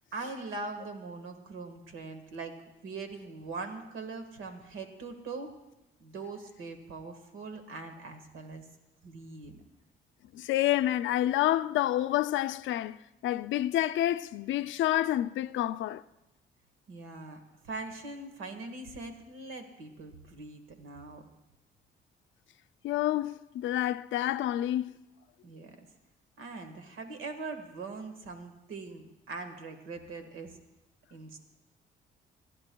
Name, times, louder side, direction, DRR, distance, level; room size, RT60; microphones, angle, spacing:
voice 1, 0.1-2.5 2.8-5.5 6.0-8.6 9.0-9.7 16.9-21.2 25.4-25.8 26.4-30.6 31.1-31.4, right 3 dB, 85° right, 1.6 m, -42 dB
voice 2, 10.3-16.0 22.8-24.9, left 13 dB, 75° left, 0.4 m, -28 dB
26.0 x 11.0 x 2.3 m
cardioid pair, 90°, 20 cm